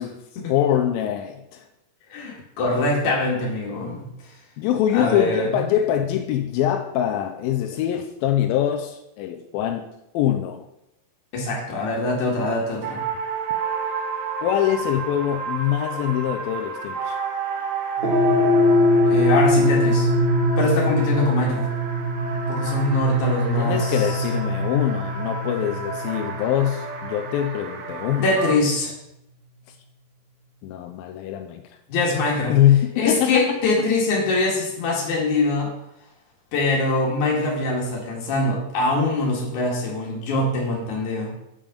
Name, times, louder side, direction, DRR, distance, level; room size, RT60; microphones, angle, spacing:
voice 1, 0.5-1.6 4.6-10.7 14.4-17.2 23.6-28.3 30.6-31.6 32.5-33.6, left 11 dB, 90° left, 5 dB, 2.5 m, -23 dB
voice 2, 2.1-4.1 4.9-5.6 11.3-13.0 19.1-20.1 20.6-21.7 22.5-23.9 28.2-28.9 31.9-32.5 33.0-35.7 36.5-41.3, left 2 dB, 60° left, -2 dB, 3.2 m, -23 dB
sound 1, 12.8-28.5, right 5 dB, 65° right, 2.2 m, -31 dB
sound 2, 18.0-26.5, left 1 dB, 35° right, 0.8 m, -21 dB
9.0 x 5.5 x 5.1 m, 0.84 s
omnidirectional pair, 4.1 m